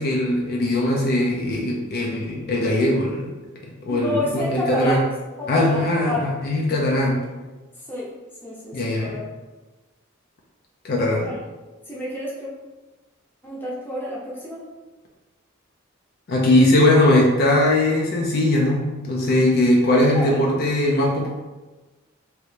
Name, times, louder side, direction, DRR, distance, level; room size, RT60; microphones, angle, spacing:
voice 1, 0.0-3.3 3.8-5.0 5.5-7.2 8.7-9.1 10.8-11.3 16.3-21.3, left 1 dB, 50° left, -1 dB, 0.5 m, -20 dB
voice 2, 3.9-6.3 7.9-8.1 8.4-9.2 11.2-11.3 11.9-12.5 13.4-14.6 20.1-20.5, equal, 10° left, -6 dB, 0.7 m, -29 dB
3.0 x 2.6 x 3.3 m, 1.2 s
head